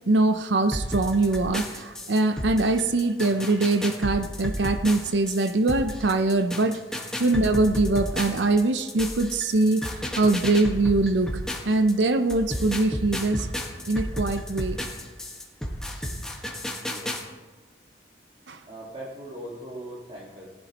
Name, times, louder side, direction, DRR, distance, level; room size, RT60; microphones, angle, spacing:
voice 1, 0.1-6.8 7.2-9.8 10.1-13.5 13.9-14.8 18.5-18.6, right 2 dB, 80° right, 10 dB, 0.6 m, -23 dB
sound 1, 0.7-11.9 12.3-17.2, equal, 5° left, 1.4 m, -32 dB
voice 2, 16.8-17.1 18.7-20.5, right 1 dB, 35° right, -5 dB, 1.8 m, -40 dB
19.0 x 11.0 x 3.0 m, 1.3 s
head